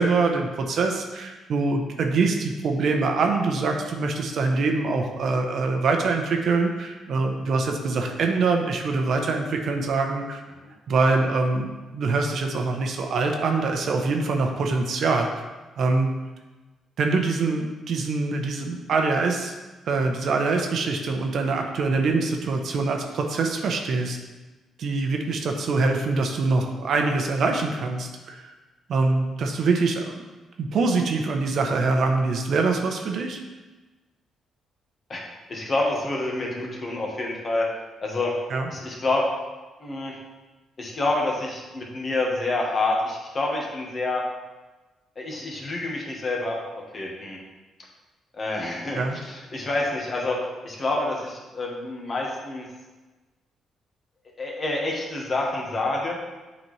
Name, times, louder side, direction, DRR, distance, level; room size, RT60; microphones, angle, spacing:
voice 1, 0.0-10.4 10.9-15.3 15.8-16.1 17.0-19.5 19.9-24.2 24.8-28.5 28.9-30.2 30.6-33.4 38.5-38.7 48.9-49.2, right 3 dB, 65° right, 3 dB, 0.8 m, -24 dB
voice 2, 35.5-37.7 38.0-38.3 38.7-39.3 39.8-40.2 40.8-44.2 45.2-47.4 48.3-50.4 50.6-52.6 54.4-56.2, left 2 dB, 40° left, -1 dB, 1.4 m, -27 dB
7.7 x 4.1 x 3.2 m, 1.2 s
cardioid pair, 90°, 0 cm